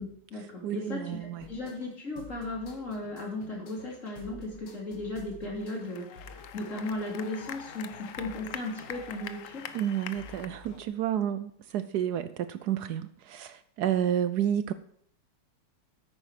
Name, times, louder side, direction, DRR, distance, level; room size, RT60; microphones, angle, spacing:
voice 1, 0.0-6.1 6.5-9.7, left 2 dB, 45° left, -1 dB, 3.3 m, -36 dB
voice 2, 0.6-1.5 9.7-14.7, right 10 dB, 75° right, 13 dB, 1.1 m, -30 dB
sound 1, 1.4-10.9, left 2 dB, 80° left, 2.2 m, -51 dB
sound 2, 5.6-10.5, left 9 dB, 60° left, 0.9 m, -43 dB
10.0 x 8.9 x 4.8 m, 0.68 s
omnidirectional pair, 1.9 m